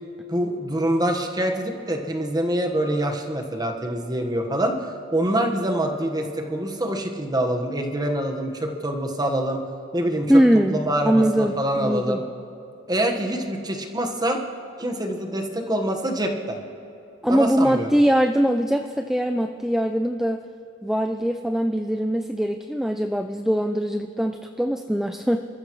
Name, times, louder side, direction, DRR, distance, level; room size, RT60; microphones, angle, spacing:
voice 1, 0.3-4.8 5.1-9.6 9.9-10.3 10.7-12.2 12.9-14.4 14.8-16.6 17.3-17.9, right 1 dB, 20° right, 2 dB, 1.4 m, -25 dB
voice 2, 10.3-12.2 17.2-20.4 20.8-25.5, equal, ahead, 6 dB, 0.4 m, -22 dB
28.5 x 14.0 x 3.2 m, 2.8 s
head